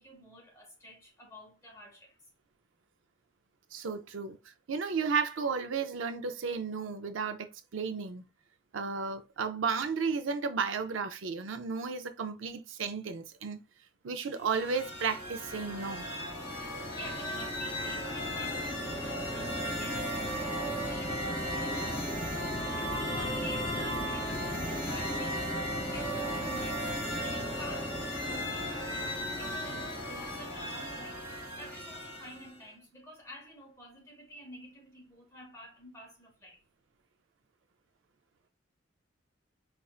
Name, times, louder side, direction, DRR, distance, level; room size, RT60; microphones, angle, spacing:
voice 1, 0.0-2.2 16.6-25.5 25.8-36.6, equal, 15° left, 1.2 m, -49 dB
voice 2, 3.7-8.3 8.7-13.6 14.0-16.1, right 5 dB, 75° right, 0.5 m, -33 dB
sound 1, 14.4-32.6, equal, 55° left, 1.2 m, -35 dB
4.3 x 2.4 x 2.4 m
head